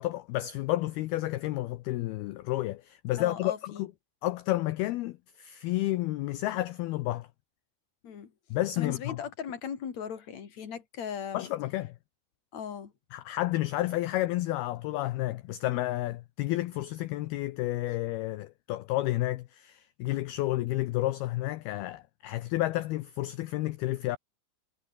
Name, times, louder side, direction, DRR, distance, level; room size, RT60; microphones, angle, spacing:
voice 1, 0.0-3.9 4.2-7.3 8.5-9.2 11.3-12.0 13.1-24.2, left 16 dB, 90° left, 2.2 m, -31 dB
voice 2, 3.2-3.9 8.0-8.3 8.8-11.5 12.5-12.9, left 7 dB, 40° left, 3.5 m, -38 dB
omnidirectional pair, 5.5 m